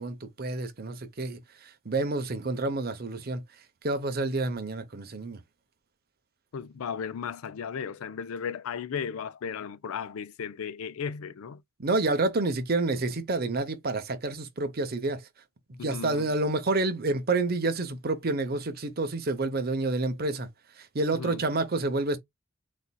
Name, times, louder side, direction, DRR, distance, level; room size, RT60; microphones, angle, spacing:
voice 1, 0.0-1.4 1.9-3.4 3.8-5.4 11.8-15.2 15.8-20.5 20.8-22.2, right 2 dB, 45° right, 0.7 m, -28 dB
voice 2, 6.5-11.6 15.8-16.3 21.1-21.4, left 7 dB, 70° left, 0.4 m, -35 dB
4.2 x 2.4 x 2.2 m
head